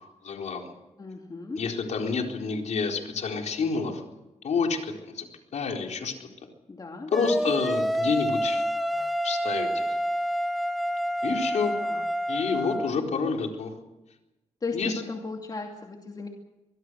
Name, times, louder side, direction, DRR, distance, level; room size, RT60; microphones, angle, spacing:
voice 1, 0.2-0.7 1.6-4.0 4.4-5.3 5.5-6.3 7.1-8.6 9.2-9.9 11.2-11.8 12.3-13.7 14.7-14.9, left 5 dB, 70° left, 2 dB, 4.2 m, -28 dB
voice 2, 1.0-1.6 6.7-7.5 11.8-12.1 14.6-16.3, left 3 dB, 35° left, 1 dB, 2.6 m, -36 dB
sound 1, 7.1-12.9, equal, ahead, 1.3 m, -28 dB
24.5 x 20.5 x 6.4 m, 1.0 s
cardioid pair, 105°, 12 cm